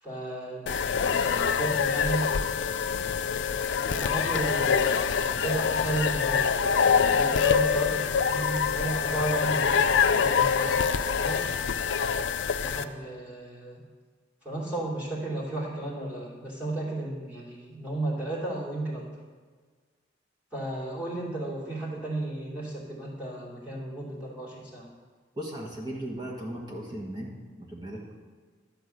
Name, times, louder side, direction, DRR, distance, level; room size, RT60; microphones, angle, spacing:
voice 1, 0.0-2.3 3.9-11.5 12.6-13.8 14.4-19.0 20.5-24.9, right 2 dB, 5° right, -7 dB, 2.7 m, -34 dB
sound 1, 0.7-12.8, left 6 dB, 80° left, 0.5 m, -25 dB
voice 2, 25.3-27.3 27.6-28.1, right 1 dB, 25° right, -2 dB, 1.3 m, -37 dB
11.5 x 4.5 x 7.9 m, 1.5 s
head